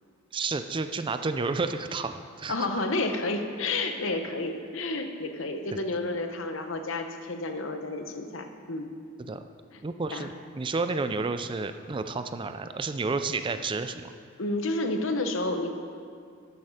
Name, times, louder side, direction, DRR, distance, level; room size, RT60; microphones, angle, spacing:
voice 1, 0.3-2.7 5.7-5.8 9.3-9.4 9.8-14.0, right 3 dB, 25° right, 9 dB, 0.4 m, -31 dB
voice 2, 2.5-8.9 9.7-9.8 10.1-10.3 14.4-15.7, left 2 dB, 70° left, 6 dB, 1.0 m, -30 dB
12.5 x 8.5 x 5.0 m, 2.2 s
head